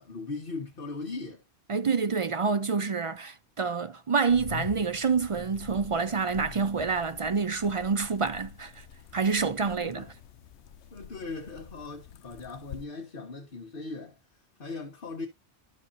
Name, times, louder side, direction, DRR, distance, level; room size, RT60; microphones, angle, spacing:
voice 1, 0.0-1.4 9.4-10.1 10.9-14.2 14.6-15.3, left 3 dB, 55° left, 1.5 m, -39 dB
voice 2, 1.7-8.7 9.1-10.1, right 5 dB, 50° right, 0.4 m, -27 dB
sound 1, 4.3-12.8, left 9 dB, 85° left, 0.9 m, -46 dB
12.5 x 4.7 x 2.6 m
omnidirectional pair, 1.1 m